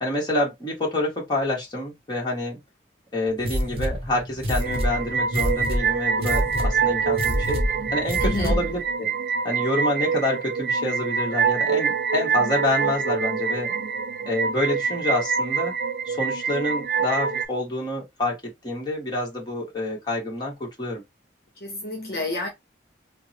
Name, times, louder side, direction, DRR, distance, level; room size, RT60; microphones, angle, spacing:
voice 1, 0.0-2.6 3.1-7.6 7.9-9.1 9.4-13.7 14.3-15.7 16.1-18.3 18.6-21.0, left 1 dB, 25° left, 1.2 m, -27 dB
sound 1, 3.4-8.8, equal, 35° right, 0.8 m, -27 dB
sound 2, 4.6-17.5, right 6 dB, 55° right, 0.3 m, -25 dB
voice 2, 8.2-8.7 21.6-22.5, left 2 dB, 55° left, 0.9 m, -29 dB
3.6 x 2.1 x 2.7 m
head